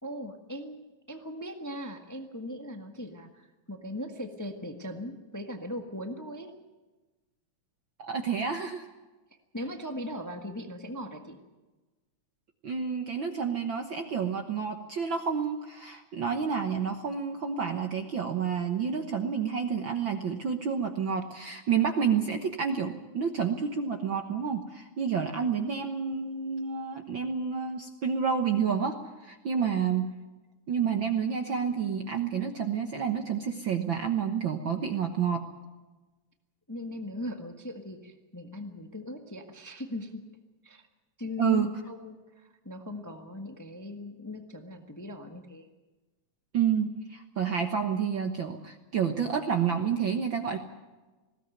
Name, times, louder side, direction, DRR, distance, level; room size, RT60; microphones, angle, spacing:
voice 1, 0.0-6.5 9.5-11.4 36.7-40.2 40.6-40.8 41.2-45.7, left 1 dB, 25° left, 4 dB, 0.3 m, -39 dB
voice 2, 8.0-8.9 12.6-30.1 30.7-35.4 41.4-41.7 46.5-50.6, right 7 dB, 55° right, 5 dB, 1.4 m, -29 dB
20.0 x 17.0 x 9.2 m, 1.2 s
omnidirectional pair, 3.5 m